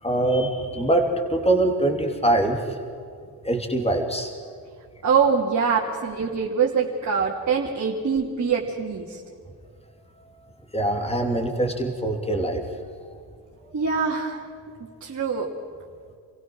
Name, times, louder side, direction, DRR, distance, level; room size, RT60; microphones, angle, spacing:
voice 1, 0.0-2.8 3.4-4.4 10.7-12.6, right 1 dB, 15° left, 4 dB, 3.2 m, -23 dB
voice 2, 5.0-9.2 13.7-14.4 15.0-15.5, right 6 dB, 40° right, -4 dB, 2.8 m, -24 dB
27.5 x 16.0 x 6.3 m, 2.2 s
cardioid pair, 90°, 42 cm